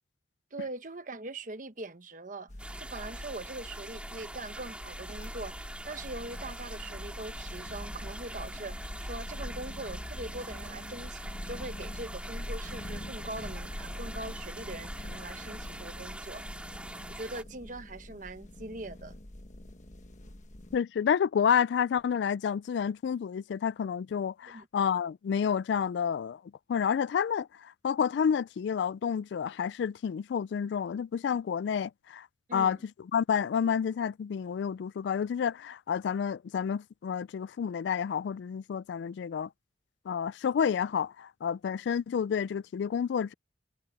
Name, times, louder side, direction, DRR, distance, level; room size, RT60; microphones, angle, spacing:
voice 1, 0.5-2.5 2.8-16.4 17.1-19.2 24.5-24.7 32.5-32.8, right 2 dB, 45° right, 1.2 m, -42 dB
sound 1, 2.5-20.8, left 1 dB, 40° left, 1.2 m, -43 dB
sound 2, 2.6-17.4, right 1 dB, 5° right, 2.1 m, -44 dB
voice 2, 20.7-26.4 26.7-32.3 32.5-32.8 33.1-39.5 40.1-43.3, left 7 dB, 70° left, 0.3 m, -29 dB
head